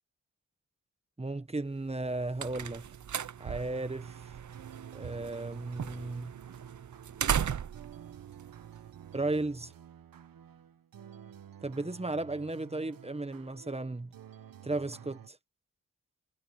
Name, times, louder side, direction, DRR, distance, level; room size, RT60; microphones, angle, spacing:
voice 1, 1.2-2.9 3.4-4.1 4.9-6.4 9.1-9.7 11.6-14.1 14.6-15.4, right 2 dB, 20° right, 1.4 m, -35 dB
sound 1, 1.9-9.4, right 8 dB, 60° right, 0.9 m, -37 dB
sound 2, 4.0-15.3, right 9 dB, 85° right, 1.3 m, -51 dB
cardioid pair, 60°, 33 cm